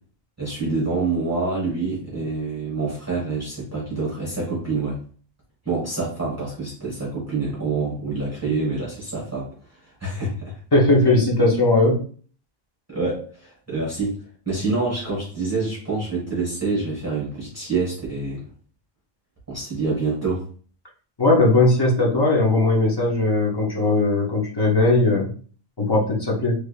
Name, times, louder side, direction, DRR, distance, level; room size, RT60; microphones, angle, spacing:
voice 1, 0.4-5.0 5.6-9.5 9.8-10.5 12.9-14.2 14.4-18.5 19.5-20.5, right 3 dB, 15° right, -7 dB, 1.5 m, -26 dB
voice 2, 10.7-12.0 21.2-25.3 25.8-26.5, left 2 dB, 25° left, -2 dB, 0.8 m, -18 dB
3.4 x 3.1 x 2.4 m, 0.43 s
omnidirectional pair, 1.1 m